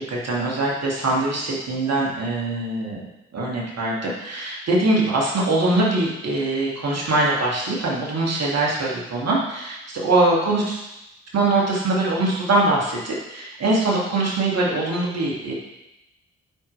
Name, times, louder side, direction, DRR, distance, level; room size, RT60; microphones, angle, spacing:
voice 1, 0.0-3.1 3.3-10.8 11.3-15.5, right 2 dB, 50° right, -3 dB, 2.3 m, -22 dB
8.8 x 4.7 x 3.3 m, 0.92 s
hypercardioid pair, 40°, 33 cm